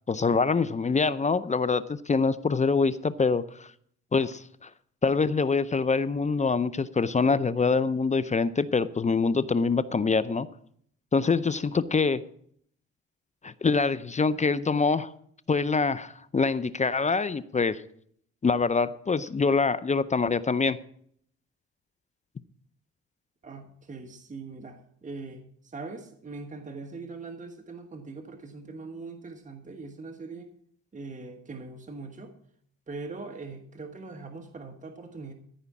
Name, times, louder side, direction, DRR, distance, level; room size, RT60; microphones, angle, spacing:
voice 1, 0.1-3.7 4.1-4.7 5.0-10.5 11.1-12.2 13.4-15.1 15.5-17.8 18.4-20.8, left 4 dB, 25° left, 15 dB, 0.6 m, -25 dB
voice 2, 23.4-30.5 30.9-32.3 32.9-35.3, right 3 dB, 25° right, 5 dB, 1.4 m, -41 dB
14.5 x 5.0 x 8.3 m, 0.65 s
cardioid pair, 90°, 30 cm